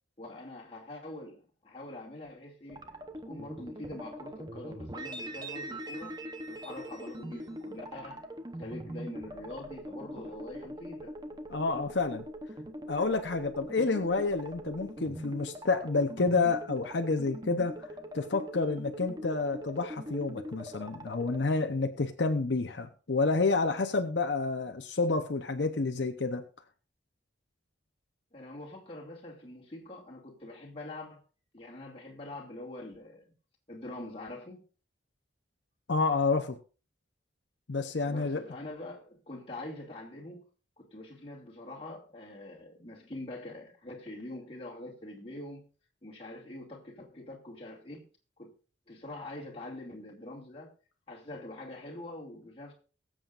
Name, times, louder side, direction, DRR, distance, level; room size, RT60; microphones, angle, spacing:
voice 1, 0.2-2.9 3.3-6.2 6.5-8.2 8.6-11.2 28.3-31.2 31.5-33.3 33.7-34.6 38.1-40.5 40.8-45.7 46.0-48.1 48.4-48.5 48.9-50.7 51.1-52.7, left 1 dB, 30° left, 2.4 m, -44 dB
sound 1, 2.7-21.4, equal, 20° right, 0.8 m, -42 dB
voice 2, 11.5-12.3 12.9-17.9 18.1-26.4 35.9-36.6 37.7-38.4, left 3 dB, 70° left, 0.8 m, -29 dB
22.0 x 7.6 x 2.5 m
head